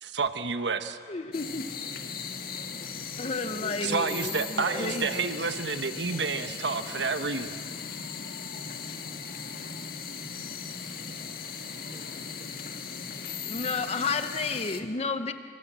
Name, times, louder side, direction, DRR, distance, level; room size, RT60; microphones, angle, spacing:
voice 1, 0.0-1.0 3.8-7.6, right 4 dB, 85° right, 9 dB, 1.1 m, -30 dB
voice 2, 1.1-1.7 3.2-5.3 13.5-15.3, left 4 dB, 35° left, 9 dB, 0.8 m, -31 dB
sound 1, 1.3-14.8, left 6 dB, 55° left, 1.7 m, -38 dB
voice 3, 3.0-4.1 4.6-4.9 6.1-6.2 9.0-9.5 10.8-11.0 11.4-11.5 11.9-12.6, equal, 15° right, 0 dB, 4.5 m, -44 dB
27.5 x 25.5 x 7.5 m, 2.2 s
head